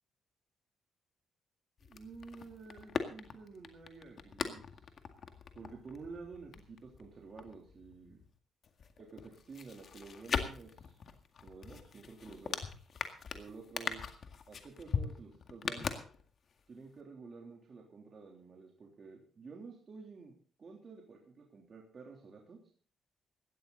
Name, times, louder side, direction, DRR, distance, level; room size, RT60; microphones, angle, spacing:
sound 1, 1.8-8.3 8.6-16.6 16.9-17.0, left 6 dB, 55° left, 1.9 m, -41 dB
voice 1, 1.8-4.9 5.5-8.2 9.0-11.0 11.4-12.6 13.3-14.0 14.5-16.0 16.7-20.3 20.6-22.7, right 4 dB, 45° right, 0 dB, 3.2 m, -51 dB
17.5 x 12.5 x 4.0 m, 0.42 s
cardioid pair, 90°, 0 cm